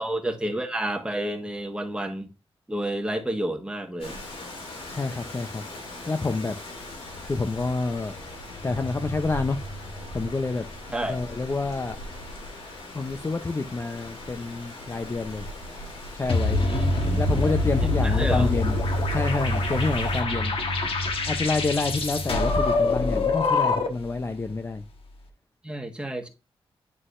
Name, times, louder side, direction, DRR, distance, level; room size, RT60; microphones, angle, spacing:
voice 1, 0.0-2.3 2.7-4.2 10.9-11.2 16.6-17.4 17.8-18.5 25.6-26.3, right 1 dB, 10° right, 1.4 m, -30 dB
Rain, 4.0-20.2, left 1 dB, 85° left, 3.2 m, -40 dB
voice 2, 4.9-5.6 6.1-6.6 7.2-8.1 8.6-9.6 9.9-10.6 11.1-12.0 12.9-15.5 16.1-16.6 17.2-18.8 19.1-20.5 21.3-24.8, left 3 dB, 25° left, 0.6 m, -28 dB
sound 1, 8.5-11.4, equal, 40° left, 1.7 m, -41 dB
sound 2, 16.3-24.1, left 2 dB, 65° left, 1.3 m, -24 dB
9.7 x 4.0 x 2.5 m
wide cardioid pair, 100°, 10 cm